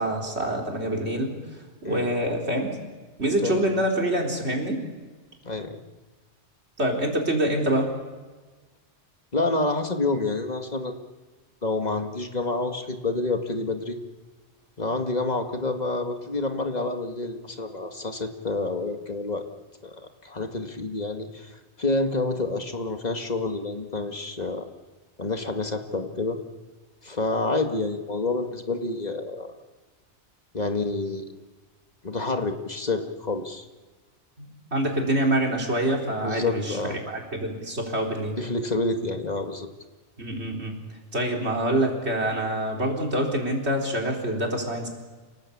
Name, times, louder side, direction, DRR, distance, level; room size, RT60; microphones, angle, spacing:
voice 1, 0.0-1.4 1.8-2.7 3.2-4.8 6.8-7.9 34.4-38.4 40.2-40.8 41.1-44.9, right 1 dB, 65° right, 1 dB, 4.3 m, -26 dB
voice 2, 5.4-5.8 9.3-11.0 11.6-14.0 14.8-19.4 19.8-24.6 25.2-26.4 27.0-29.5 30.5-31.3 32.0-33.6 36.2-37.0 38.4-39.7, left 2 dB, 35° left, 5 dB, 2.1 m, -28 dB
29.0 x 18.5 x 8.7 m, 1.3 s
omnidirectional pair, 1.2 m